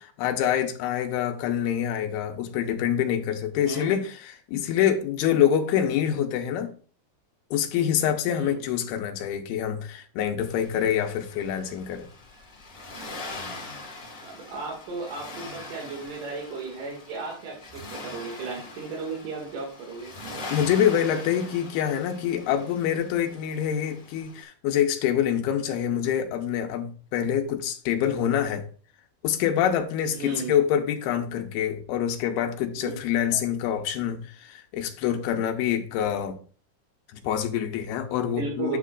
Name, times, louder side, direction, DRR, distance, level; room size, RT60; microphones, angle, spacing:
voice 1, 0.0-6.7 7.5-12.1 20.5-28.6 29.2-36.4 37.1-38.8, left 9 dB, 80° left, 2.6 m, -26 dB
voice 2, 3.6-4.0 8.3-8.6 14.3-20.1 30.1-30.5 32.8-32.9 38.4-38.8, right 4 dB, 60° right, 3.3 m, -35 dB
Accelerating revving vroom, 10.4-24.4, left 2 dB, 50° left, 0.6 m, -42 dB
9.2 x 7.5 x 2.4 m
omnidirectional pair, 4.8 m